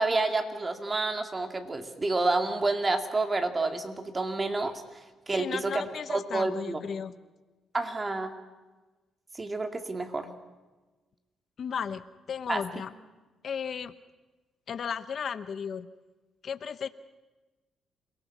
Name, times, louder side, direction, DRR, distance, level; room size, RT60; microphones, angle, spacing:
voice 1, 0.0-4.8 5.3-5.8 6.1-6.8 7.7-8.3 9.3-10.3 12.5-12.6, right 3 dB, 25° right, 6 dB, 2.3 m, -29 dB
voice 2, 5.3-7.1 11.6-12.9 13.4-13.9 14.7-15.9 16.4-16.9, left 7 dB, 55° left, 13 dB, 0.8 m, -35 dB
28.0 x 18.5 x 6.0 m, 1.2 s
cardioid pair, 90°, 0 cm